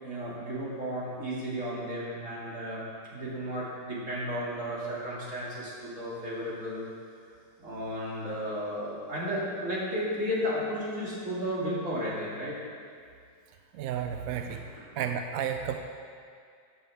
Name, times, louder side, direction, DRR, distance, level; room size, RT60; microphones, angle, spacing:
voice 1, 0.0-2.8 3.1-6.8 7.6-12.5 14.5-14.8, equal, 45° right, -7 dB, 2.8 m, -33 dB
voice 2, 13.7-14.7 15.0-15.8, right 8 dB, 75° right, 6 dB, 0.8 m, -32 dB
13.5 x 8.4 x 3.6 m, 2.2 s
omnidirectional pair, 1.9 m